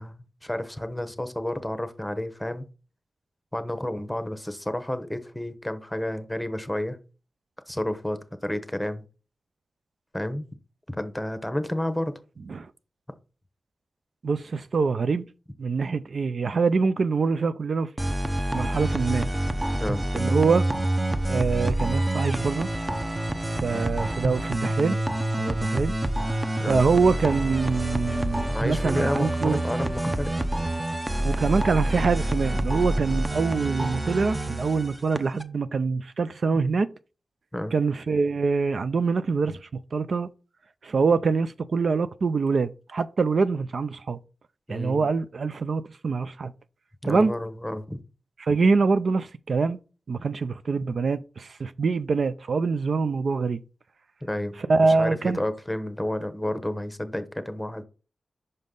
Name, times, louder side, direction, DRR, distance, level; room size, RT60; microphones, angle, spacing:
voice 1, 0.0-2.6 3.5-7.0 7.7-9.0 10.1-10.4 10.9-12.1 19.8-20.0 23.7-23.8 26.6-26.8 28.5-30.3 37.5-37.7 44.7-45.1 47.0-48.0 54.2-54.6 54.8-57.8, left 1 dB, 10° left, 1.0 m, -30 dB
voice 2, 14.2-15.2 15.6-17.9 18.5-19.3 20.1-20.7 21.3-22.7 23.5-25.0 25.4-25.9 26.7-29.6 31.2-36.9 37.7-40.3 40.8-44.2 44.7-46.5 47.0-47.3 48.4-49.8 50.1-53.6 54.6-55.4, right 4 dB, 70° right, 0.4 m, -24 dB
sound 1, 18.0-35.4, right 1 dB, 20° right, 0.8 m, -27 dB
5.4 x 5.2 x 3.8 m
cardioid pair, 55°, 0 cm